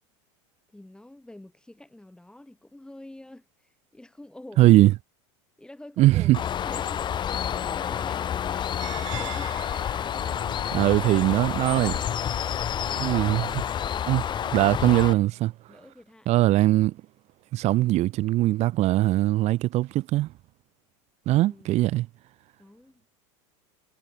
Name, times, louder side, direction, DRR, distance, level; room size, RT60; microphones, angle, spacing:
voice 1, 0.7-4.8 5.6-9.7 10.8-15.2 15.7-16.4 21.3-21.8 22.6-23.1, left 1 dB, 5° left, 2.6 m, -47 dB
voice 2, 4.6-4.9 6.0-6.4 10.7-12.0 13.0-13.5 14.1-14.2 14.5-15.5 16.3-17.0 17.5-20.3 21.3-22.1, right 16 dB, 45° right, 0.6 m, -21 dB
Bird, 6.3-15.1, left 9 dB, 30° left, 0.8 m, -29 dB
sound 1, 8.8-14.8, right 14 dB, 90° right, 2.5 m, -45 dB
supercardioid pair, 115°, 16 cm